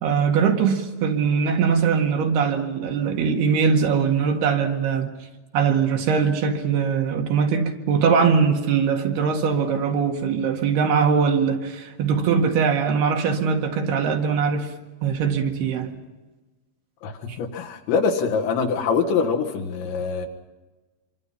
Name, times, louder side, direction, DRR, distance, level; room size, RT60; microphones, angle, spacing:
voice 1, 0.0-5.1 5.5-14.7 15.0-15.9 17.3-17.4, right 6 dB, 65° right, 3.7 m, -21 dB
voice 2, 17.0-20.3, left 5 dB, 75° left, 3.9 m, -24 dB
26.5 x 25.0 x 5.7 m
omnidirectional pair, 5.3 m